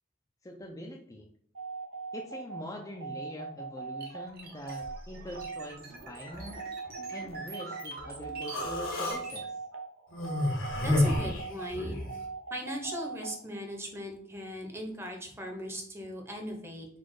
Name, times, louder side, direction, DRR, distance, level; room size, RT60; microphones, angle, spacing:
voice 1, 0.4-1.3 2.1-6.7 7.1-9.5, equal, 15° left, 0 dB, 0.4 m, -43 dB
sound 1, 1.5-13.6, right 5 dB, 85° right, 0.9 m, -41 dB
sound 2, 4.0-9.5, right 2 dB, 50° right, 0.9 m, -45 dB
Human voice, 8.5-9.2 10.1-12.1, left 1 dB, 85° left, 1.3 m, -29 dB
voice 2, 10.8-12.0 12.5-16.9, equal, 15° right, 2 dB, 0.8 m, -38 dB
4.2 x 2.3 x 4.7 m, 0.64 s
head